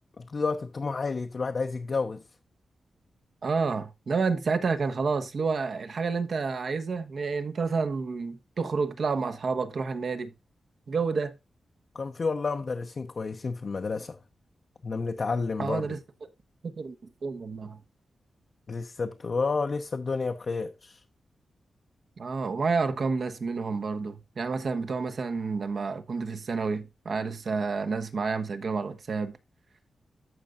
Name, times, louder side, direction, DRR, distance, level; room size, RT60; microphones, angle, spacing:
voice 1, 0.2-2.2 11.9-14.2 14.8-16.0 18.7-21.0, left 4 dB, 45° left, 0.7 m, -30 dB
voice 2, 3.4-10.3 10.9-11.3 15.6-16.0 16.6-16.9 17.2-17.8 22.2-29.4, right 4 dB, 60° right, 1.2 m, -29 dB
14.5 x 5.3 x 2.5 m
wide cardioid pair, 105°, 0 cm